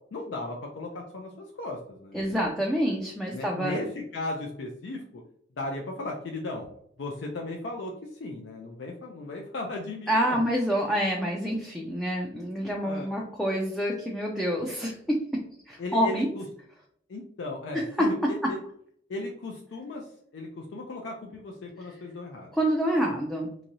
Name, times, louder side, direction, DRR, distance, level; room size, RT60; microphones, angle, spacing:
voice 1, 0.1-2.2 3.3-5.2 5.6-6.7 7.0-10.4 12.8-13.1 15.8-16.5 17.1-18.6 19.1-22.5, left 2 dB, 70° left, 0 dB, 0.4 m, -36 dB
voice 2, 2.1-3.8 10.1-15.0 15.3-16.3 18.0-18.1 22.5-23.6, equal, ahead, -2 dB, 0.3 m, -27 dB
3.0 x 2.6 x 2.6 m, 0.66 s
head